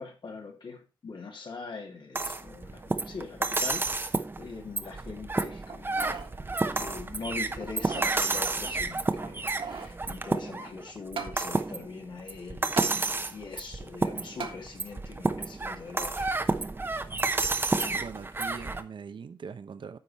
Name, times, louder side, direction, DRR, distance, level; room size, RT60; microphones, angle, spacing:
voice 1, 0.0-4.1 4.4-6.3 6.8-12.9 13.3-16.3, left 4 dB, 65° left, 2.3 m, -42 dB
sound 1, 2.1-18.8, right 3 dB, 25° right, 0.8 m, -30 dB
sound 2, 5.7-6.3 6.8-6.9 7.6-8.2 9.2-10.0 11.2-11.4 12.8-12.9 14.4-14.6 15.2-15.3, right 5 dB, 85° right, 1.6 m, -38 dB
voice 2, 17.9-20.0, right 6 dB, 70° right, 0.8 m, -41 dB
9.7 x 6.7 x 4.3 m
wide cardioid pair, 175°, 9 cm